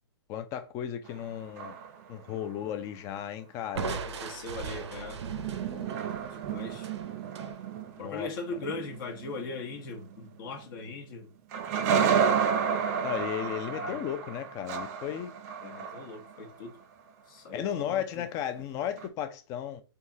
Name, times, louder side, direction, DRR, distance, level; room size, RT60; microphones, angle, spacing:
voice 1, 0.3-1.8 2.1-4.0 8.0-8.3 13.0-15.3 17.5-19.8, left 10 dB, 20° left, 0.4 m, -34 dB
sound 1, 1.1-2.3 5.1-10.9 11.5-16.5 19.0-19.1, right 7 dB, 35° right, 0.5 m, -31 dB
Crushing, 3.8-7.5, right 6 dB, 80° right, 0.6 m, -38 dB
voice 2, 3.9-5.2 5.7-5.9 6.3-6.9 8.0-11.3 13.7-14.0 15.6-16.7 17.3-17.6 17.9-18.2, left 3 dB, 50° left, 0.9 m, -40 dB
3.5 x 2.8 x 2.6 m
hypercardioid pair, 145°, 14 cm